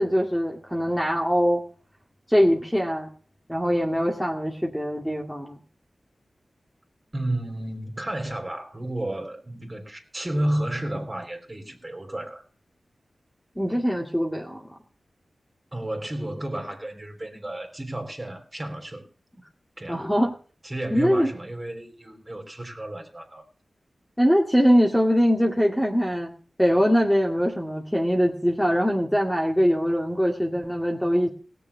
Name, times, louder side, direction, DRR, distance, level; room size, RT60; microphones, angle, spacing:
voice 1, 0.0-1.6 2.3-3.1 3.5-5.6 13.6-14.6 19.9-20.3 20.9-21.3 24.2-26.3 26.6-31.3, equal, ahead, 2.3 m, -22 dB
voice 2, 7.1-12.4 15.7-19.0 19.8-20.1 20.6-23.4, right 1 dB, 30° right, 3.7 m, -32 dB
17.5 x 6.8 x 7.0 m
cardioid pair, 50°, 0 cm